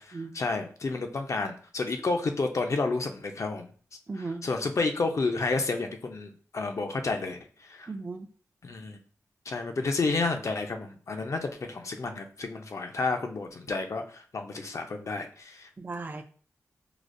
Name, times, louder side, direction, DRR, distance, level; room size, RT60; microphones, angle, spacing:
voice 1, 0.0-3.7 4.1-7.9 8.6-9.0 9.5-15.7, left 3 dB, 60° left, 5 dB, 0.5 m, -31 dB
voice 2, 4.1-4.4 7.9-8.3 15.8-16.2, right 3 dB, 30° right, 6 dB, 0.4 m, -36 dB
4.8 x 2.0 x 2.5 m, 0.42 s
cardioid pair, 60°, 6 cm